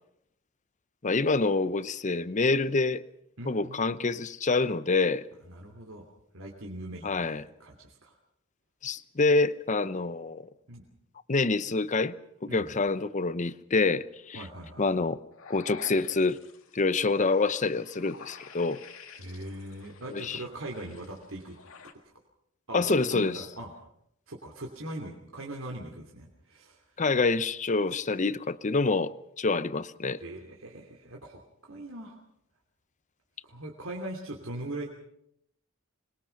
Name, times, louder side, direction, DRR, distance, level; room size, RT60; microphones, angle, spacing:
voice 1, 1.0-3.0 3.5-5.2 7.0-7.4 8.8-10.5 11.3-12.2 12.4-14.4 14.8-15.2 15.5-16.4 16.7-18.8 20.1-20.4 22.7-23.4 27.0-30.2, left 3 dB, 35° left, 0.7 m, -26 dB
voice 2, 3.4-4.1 5.4-8.2 10.7-10.8 12.5-12.7 14.3-15.0 19.2-21.6 22.0-22.1 22.7-23.7 24.3-27.0 30.2-32.2 33.4-34.9, right 1 dB, 80° right, 3.0 m, -41 dB
sound 1, 15.3-21.9, left 5 dB, 80° left, 2.0 m, -50 dB
26.0 x 21.5 x 5.9 m
head